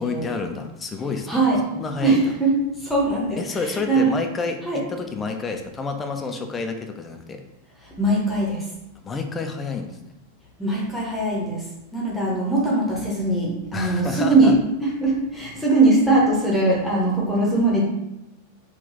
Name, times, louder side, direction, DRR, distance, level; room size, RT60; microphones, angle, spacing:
voice 1, 0.0-1.4 1.7-2.2 3.4-4.6 4.9-7.4 9.0-9.9 13.7-14.5, left 4 dB, 20° left, 5 dB, 0.5 m, -29 dB
voice 2, 1.3-1.6 2.0-2.5 2.8-4.1 4.6-4.8 7.8-8.6 10.6-11.6 11.9-14.5 14.8-17.8, right 2 dB, 5° left, -5 dB, 0.9 m, -21 dB
3.8 x 2.4 x 3.9 m, 0.88 s
figure-of-eight pair, 90°, 0 cm